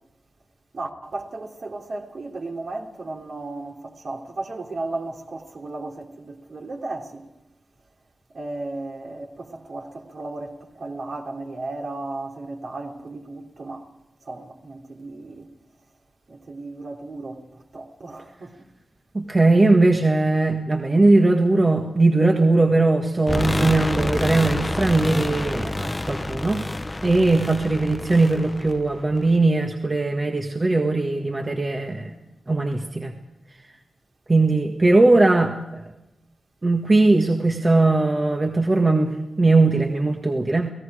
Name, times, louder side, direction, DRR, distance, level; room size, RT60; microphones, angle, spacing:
voice 1, 0.7-7.3 8.3-13.8 14.2-15.5 16.3-17.4 17.7-18.5, right 2 dB, 55° right, 3.3 m, -35 dB
voice 2, 19.1-26.6 27.0-32.1 32.5-33.1 34.3-35.8 36.6-40.7, right 2 dB, 30° right, 1.7 m, -19 dB
sound 1, 23.3-29.4, left 2 dB, 20° left, 0.7 m, -28 dB
30.0 x 18.5 x 5.0 m
wide cardioid pair, 90°, 0 cm